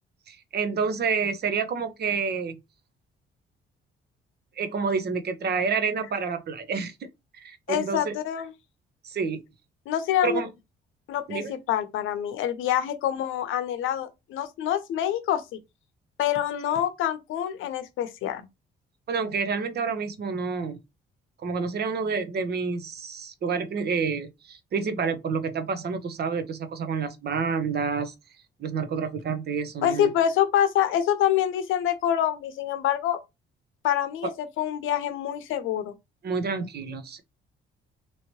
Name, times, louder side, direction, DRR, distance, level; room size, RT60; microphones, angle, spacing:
voice 1, 0.3-2.6 4.6-6.9 7.4-8.2 9.0-9.4 10.2-10.5 11.3-11.5 19.1-20.8 21.4-28.1 28.6-30.1 34.2-34.3 36.2-37.2, right 5 dB, 55° right, 0.8 m, -28 dB
voice 2, 7.7-8.5 9.9-10.4 11.1-15.6 16.2-18.5 29.8-33.2 33.8-35.9, left 10 dB, 85° left, 0.7 m, -26 dB
3.1 x 2.8 x 2.8 m
cardioid pair, 90°, 20 cm